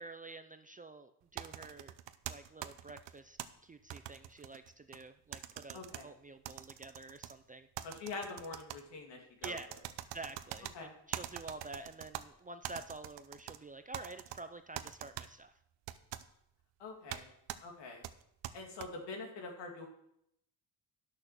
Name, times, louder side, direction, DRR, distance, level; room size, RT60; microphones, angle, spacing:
voice 1, 0.0-1.9 2.3-7.7 9.4-9.7 10.1-15.5, right 3 dB, 20° right, 9 dB, 0.4 m, -49 dB
sound 1, 1.4-3.5 3.9-5.0 5.3-6.0 6.5-7.3 7.8-8.8 9.4-10.7 11.1-12.2 12.6-13.6 13.9-14.4 14.8-15.3 15.9-16.2 17.1-17.2 17.5-17.6 18.0-18.9, right 12 dB, 75° right, 0.8 m, -43 dB
voice 2, 5.7-6.1 7.8-9.6 10.7-10.9 16.8-17.3 17.6-18.0 18.5-19.9, left 3 dB, 75° left, 1 dB, 2.8 m, -44 dB
11.0 x 6.7 x 6.0 m, 0.75 s
cardioid pair, 140°, 43 cm